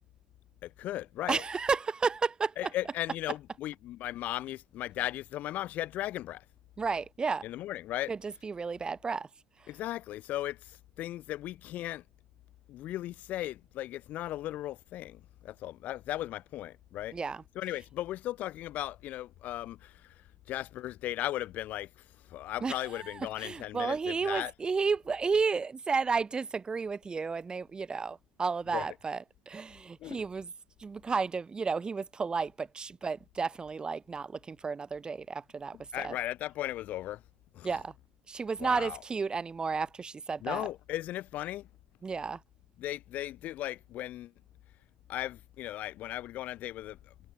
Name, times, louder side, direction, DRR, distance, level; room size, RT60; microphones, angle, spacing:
voice 1, 0.6-1.4 2.6-6.4 7.4-8.1 9.7-12.0 12.7-17.2 17.5-24.5 28.7-28.9 30.0-30.2 35.7-37.2 37.5-37.8 38.6-39.0 40.4-41.7 42.8-44.3 45.1-47.1, left 14 dB, 55° left, 3.0 m, -37 dB
voice 2, 1.3-2.5 6.8-7.4 8.1-9.3 17.1-17.4 22.6-22.7 23.4-29.2 29.5-30.5 30.8-35.8 36.0-36.1 37.6-37.9 38.3-40.7 42.0-42.4, right 5 dB, 30° right, 4.2 m, -32 dB
hypercardioid pair, 60°, 3 cm